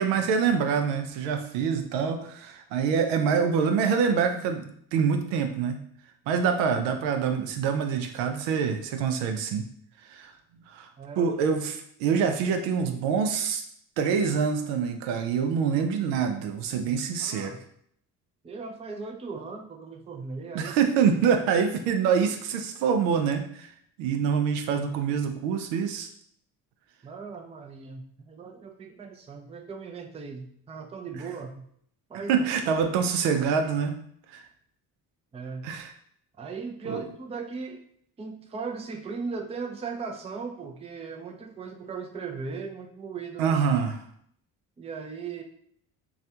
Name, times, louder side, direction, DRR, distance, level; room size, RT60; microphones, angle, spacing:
voice 1, 0.0-5.8 6.3-9.7 10.0-10.3 10.7-10.9 11.2-13.6 14.0-17.6 20.5-23.7 24.0-26.1 32.3-34.0 34.3-34.4 35.6-35.9 36.8-37.0 43.4-44.0, right 6 dB, 70° right, 6 dB, 0.6 m, -25 dB
voice 2, 11.0-11.3 17.2-17.6 18.4-20.7 27.0-31.7 32.1-32.3 35.3-35.7 36.4-37.8 38.2-43.5 44.8-45.4, right 5 dB, 15° right, 3 dB, 0.4 m, -38 dB
3.2 x 2.3 x 2.7 m, 0.65 s
hypercardioid pair, 50°, 47 cm